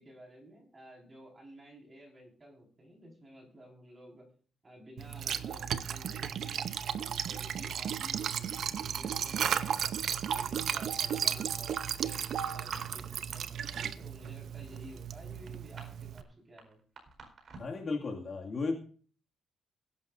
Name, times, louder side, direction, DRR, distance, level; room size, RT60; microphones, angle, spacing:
voice 1, 0.0-4.3 4.6-16.8, equal, 20° right, 0 dB, 4.9 m, -53 dB
Liquid, 5.0-16.2, right 8 dB, 55° right, 0.7 m, -34 dB
sound 1, 12.6-13.4 13.7-14.0 14.3-17.8, right 4 dB, 40° right, 4.5 m, -50 dB
voice 2, 17.6-18.7, left 3 dB, 35° left, 0 dB, 2.2 m, -34 dB
21.5 x 11.0 x 2.6 m, 0.43 s
cardioid pair, 165°, 0 cm